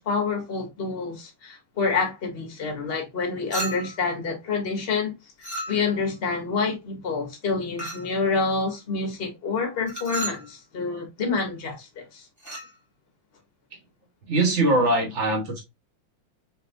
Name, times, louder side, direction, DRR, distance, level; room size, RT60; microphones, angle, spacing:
voice 1, 0.0-5.1 5.4-12.3, left 4 dB, 35° left, 1.0 m, -28 dB
Chink clink, 3.5-4.1 5.4-6.1 7.8-8.2 9.9-10.5 12.4-12.7, right 1 dB, 15° right, 0.8 m, -34 dB
voice 2, 14.3-15.6, right 2 dB, 40° right, 1.2 m, -22 dB
4.2 x 3.2 x 2.6 m
omnidirectional pair, 2.3 m